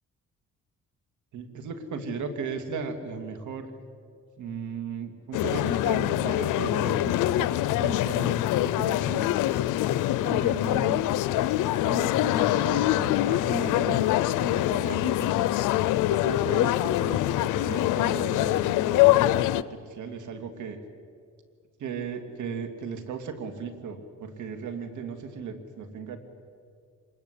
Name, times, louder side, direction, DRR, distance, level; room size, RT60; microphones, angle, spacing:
voice 1, 1.3-3.7 4.4-9.4 10.2-11.1 11.8-15.7 16.1-20.8 21.8-26.2, right 5 dB, 75° right, 6 dB, 2.8 m, -36 dB
sound 1, 5.3-19.6, left 14 dB, 90° left, 0.7 m, -24 dB
25.5 x 21.0 x 8.4 m, 2.2 s
cardioid pair, 90°, 30 cm